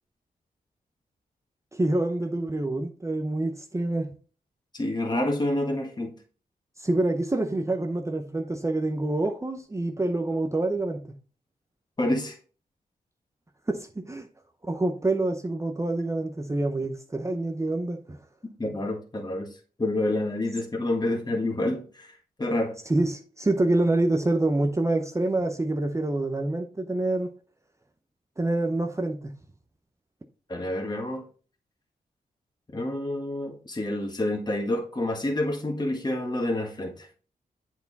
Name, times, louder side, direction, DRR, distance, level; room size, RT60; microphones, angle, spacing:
voice 1, 1.7-4.1 6.8-11.0 13.7-14.3 14.7-18.2 22.9-27.3 28.4-29.3, right 2 dB, 20° right, 0.7 m, -26 dB
voice 2, 4.7-6.2 12.0-12.3 18.6-19.5 19.8-22.1 22.4-22.7 30.5-31.2 32.7-36.9, left 1 dB, 25° left, 1.6 m, -28 dB
8.1 x 4.6 x 4.0 m
cardioid pair, 70°, 16 cm